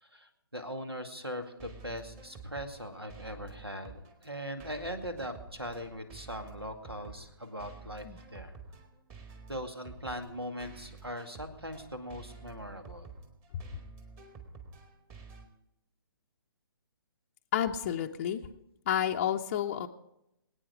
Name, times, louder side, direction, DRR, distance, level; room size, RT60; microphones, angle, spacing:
voice 1, 0.0-8.6 9.5-13.1, equal, 85° right, 7 dB, 2.2 m, -40 dB
sound 1, 1.4-15.5, right 4 dB, 20° right, 1.8 m, -50 dB
voice 2, 17.5-18.4 18.9-19.9, left 9 dB, 30° left, 3 dB, 0.6 m, -30 dB
23.0 x 9.2 x 4.9 m, 0.84 s
figure-of-eight pair, 135°, 13 cm